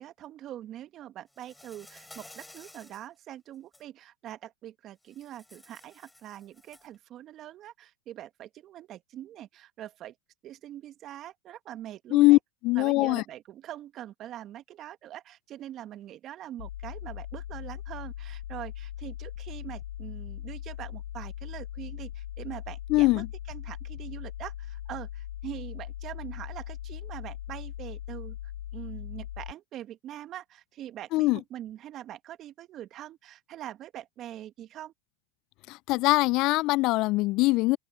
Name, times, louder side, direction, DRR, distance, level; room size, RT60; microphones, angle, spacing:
voice 1, 0.0-10.1 10.4-12.4 12.7-28.4 28.7-34.9, right 12 dB, 35° right, 1.5 m, -43 dB
Insect, 1.3-3.1 3.5-3.8 5.1-7.0, left 1 dB, 5° left, 6.3 m, -53 dB
voice 2, 12.6-13.2 22.9-23.3 31.1-31.4 35.7-37.8, left 21 dB, 45° left, 0.3 m, -22 dB
sound 1, 16.6-29.5, left 12 dB, 75° left, 3.8 m, -39 dB
hypercardioid pair, 110°, 0 cm